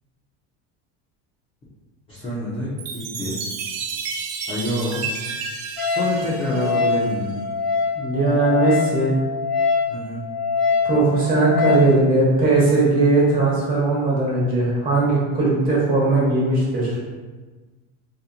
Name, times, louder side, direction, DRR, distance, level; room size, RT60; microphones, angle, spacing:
voice 1, 2.1-3.4 4.5-5.0 5.8-7.4 9.9-10.2, left 1 dB, 15° left, -10 dB, 0.4 m, -27 dB
Chime, 2.8-7.4, right 5 dB, 65° right, 0.6 m, -32 dB
Wind instrument woodwind instrument, 5.8-11.9, left 4 dB, 35° left, 1.0 m, -24 dB
voice 2, 7.9-9.1 10.8-17.0, right 2 dB, 25° right, -5 dB, 0.9 m, -19 dB
4.1 x 2.6 x 2.3 m, 1.3 s
cardioid pair, 175°, 37 cm